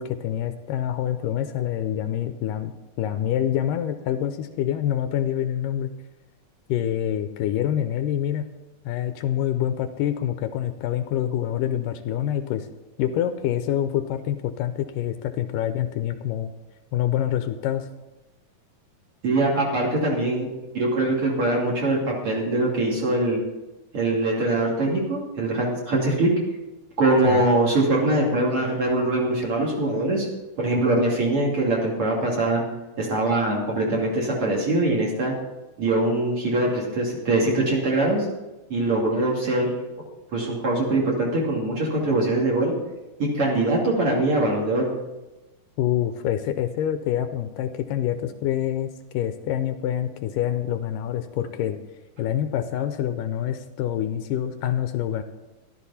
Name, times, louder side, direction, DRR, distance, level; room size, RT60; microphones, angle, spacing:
voice 1, 0.0-5.9 6.7-8.5 8.8-12.7 13.0-16.5 16.9-17.9 27.2-27.4 45.8-51.8 52.2-55.2, left 11 dB, 80° left, 9 dB, 2.2 m, -26 dB
voice 2, 19.2-20.5 20.7-22.0 22.2-23.4 23.9-26.3 27.0-30.3 30.6-32.6 33.0-35.3 35.8-38.2 38.7-39.7 40.3-42.7 43.2-44.9, right 2 dB, 40° right, -3 dB, 3.3 m, -22 dB
13.5 x 12.5 x 4.2 m, 1.1 s
omnidirectional pair, 4.0 m